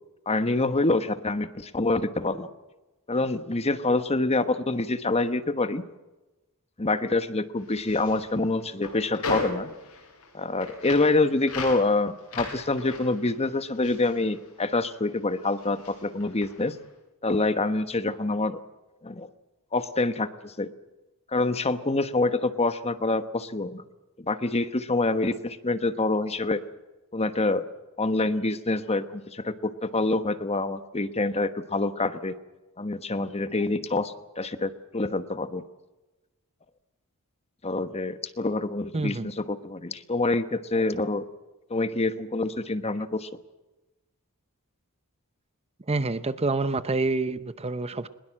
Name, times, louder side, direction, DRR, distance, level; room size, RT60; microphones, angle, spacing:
voice 1, 0.3-2.5 3.1-5.8 6.8-9.7 10.3-16.7 17.2-18.6 19.0-19.3 19.7-20.7 21.3-23.8 24.2-26.6 27.1-27.6 28.0-32.3 32.8-35.6 37.6-41.2 41.7-43.3, left 2 dB, 30° left, 11 dB, 1.2 m, -26 dB
sound 1, 7.6-15.1 15.3-16.8, left 3 dB, 85° left, 8.0 m, -38 dB
voice 2, 38.9-39.3 45.9-48.1, right 3 dB, 30° right, 13 dB, 0.8 m, -27 dB
22.0 x 21.0 x 7.6 m, 1.1 s
head